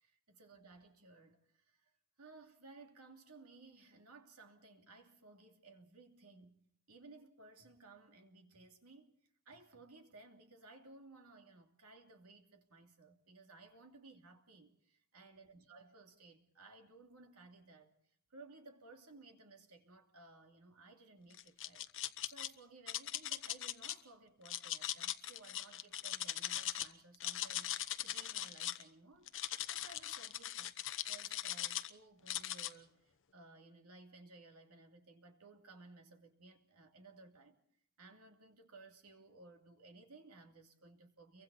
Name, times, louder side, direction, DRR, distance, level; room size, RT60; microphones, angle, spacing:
voice 1, 0.0-1.9 2.2-6.6 6.9-9.1 9.4-17.9 18.3-21.9 22.2-29.3 29.7-30.8 31.0-37.6 38.0-41.4, right 3 dB, 75° right, 3.0 m, -59 dB
sound 1, 21.3-22.5 22.9-23.9 24.4-26.9 27.1-28.8 29.3-31.9 32.3-32.7, left 12 dB, 60° left, 1.0 m, -40 dB
30.0 x 24.0 x 4.2 m
head